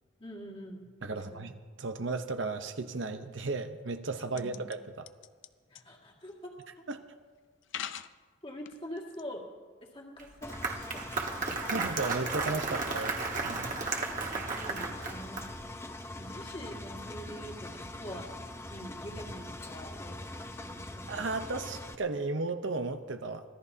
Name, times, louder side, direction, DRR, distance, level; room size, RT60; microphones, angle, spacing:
voice 1, 0.2-1.5 4.3-4.6 5.7-6.8 8.4-9.5 9.8-11.9 13.7-14.0 14.3-15.5 16.2-18.3 18.7-21.4, equal, 30° left, -2 dB, 2.1 m, -45 dB
voice 2, 1.0-1.5 1.8-5.1 6.9-7.0 11.7-13.2 13.4-13.8 21.1-23.4, right 3 dB, 75° right, 7 dB, 0.8 m, -34 dB
sound 1, 4.2-4.8 5.1-5.5 5.8-5.9 6.6-6.7 7.6-8.1 8.7-9.2, left 9 dB, 70° left, 0.5 m, -40 dB
Applause, 10.2-15.7, right 4 dB, 45° right, 1.5 m, -34 dB
Engine, 10.4-21.9, left 1 dB, 15° left, 0.6 m, -43 dB
25.0 x 16.5 x 2.8 m, 1.5 s
head